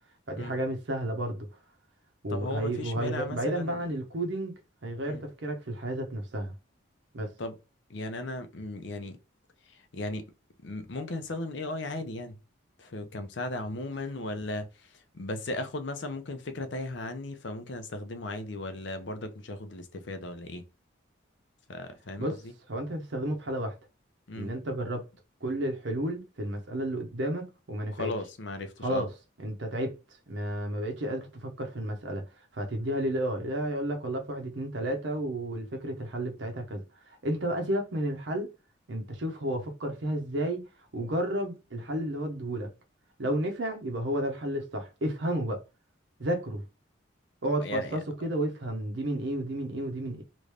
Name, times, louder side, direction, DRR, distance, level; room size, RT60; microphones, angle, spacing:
voice 1, 0.3-1.5 2.2-6.5 7.1-7.3 22.2-22.4 22.7-23.7 24.3-25.0 25.4-28.1 28.8-29.1 29.4-30.0 30.3-32.2 32.5-38.5 38.9-42.7 43.2-45.6 46.2-46.6 47.4-50.2, right 1 dB, 65° right, 0.7 m, -32 dB
voice 2, 2.3-3.8 5.0-5.2 7.4-7.5 7.9-9.2 9.6-10.3 10.6-12.4 12.8-20.7 21.7-22.5 24.3-24.5 27.9-29.1 47.6-48.0, left 2 dB, 65° left, 0.6 m, -36 dB
3.1 x 2.5 x 3.3 m
head